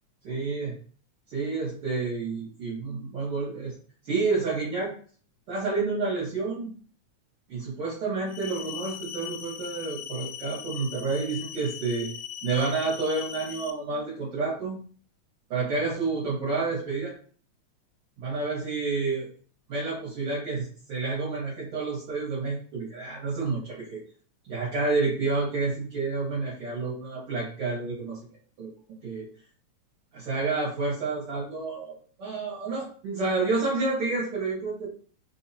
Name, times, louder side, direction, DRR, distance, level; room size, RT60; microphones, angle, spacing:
voice 1, 0.3-0.8 1.3-3.8 4.0-4.9 5.5-6.7 7.5-12.1 12.4-14.8 15.5-17.1 18.2-19.3 19.7-24.0 24.5-28.2 28.6-28.7 29.0-29.3 30.1-35.0, right 3 dB, 60° right, -7 dB, 1.8 m, -29 dB
sound 1, 8.3-13.7, left 9 dB, 85° left, 1.4 m, -39 dB
4.3 x 2.8 x 2.7 m, 0.43 s
omnidirectional pair, 3.3 m